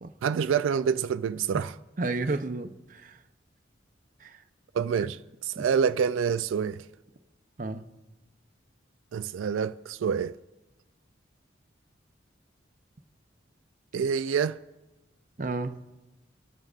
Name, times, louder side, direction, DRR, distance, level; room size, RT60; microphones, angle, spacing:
voice 1, 0.2-1.7 4.7-6.9 9.1-10.4 13.9-14.6, right 7 dB, 90° right, 0.3 m, -27 dB
voice 2, 2.0-3.2 4.2-4.4 5.0-5.1 5.6-5.7 7.6-7.9 15.4-15.8, right 3 dB, 40° right, 0.7 m, -32 dB
25.0 x 13.0 x 2.4 m
head